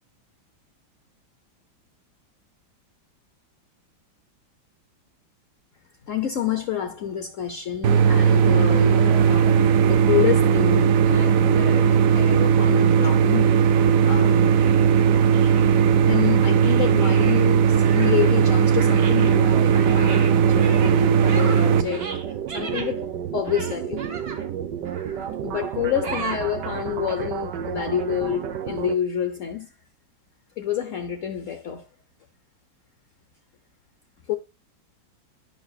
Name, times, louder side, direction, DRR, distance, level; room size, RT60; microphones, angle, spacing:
voice 1, 6.1-14.5 15.6-22.1 22.5-24.0 25.4-29.7 30.6-31.9 34.3-34.4, left 10 dB, 60° left, 0.9 m, -28 dB
sound 1, 7.8-21.8, right 7 dB, 80° right, 0.7 m, -18 dB
sound 2, 14.6-16.1 16.6-18.5 18.8-22.9 23.4-24.5 24.9-25.3 26.0-26.4, right 5 dB, 50° right, 1.6 m, -37 dB
sound 3, 19.2-29.0, right 9 dB, 65° right, 1.3 m, -31 dB
9.3 x 6.2 x 2.3 m
omnidirectional pair, 2.1 m